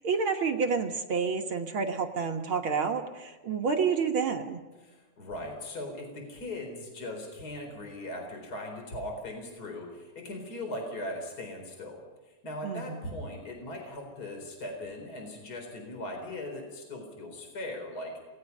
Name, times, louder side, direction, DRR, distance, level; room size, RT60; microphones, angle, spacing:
voice 1, 0.0-4.6 12.6-12.8, right 5 dB, 50° right, 3 dB, 1.9 m, -29 dB
voice 2, 4.8-18.2, left 1 dB, 30° left, 3 dB, 4.5 m, -39 dB
28.5 x 20.0 x 5.6 m, 1.2 s
omnidirectional pair, 3.6 m